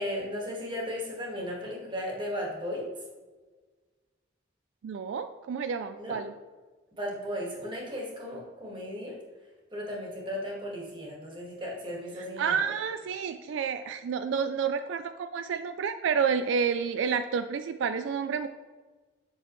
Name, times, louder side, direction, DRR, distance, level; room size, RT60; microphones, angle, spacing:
voice 1, 0.0-2.9 6.0-6.2 7.0-9.2 9.7-12.6, equal, 25° right, -2 dB, 1.7 m, -35 dB
voice 2, 4.8-6.3 12.4-18.5, right 6 dB, 75° right, 9 dB, 0.3 m, -29 dB
8.0 x 6.2 x 3.1 m, 1.3 s
head